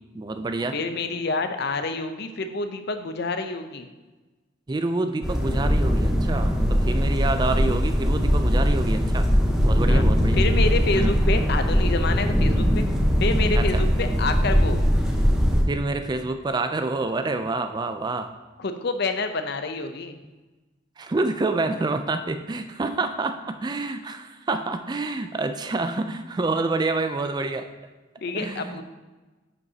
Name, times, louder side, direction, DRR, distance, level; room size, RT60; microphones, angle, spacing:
voice 1, 0.1-0.8 4.7-9.3 9.6-10.4 11.0-11.1 13.6-13.8 15.7-18.3 21.0-27.7 28.3-28.8, right 3 dB, 20° right, 8 dB, 0.3 m, -27 dB
voice 2, 0.7-3.9 9.9-10.1 10.3-12.9 13.2-14.8 18.6-20.2 28.2-28.8, left 3 dB, 55° left, 8 dB, 0.6 m, -28 dB
sound 1, 5.2-15.6, equal, 5° right, 0.9 m, -21 dB
10.5 x 5.3 x 2.8 m, 1.2 s
head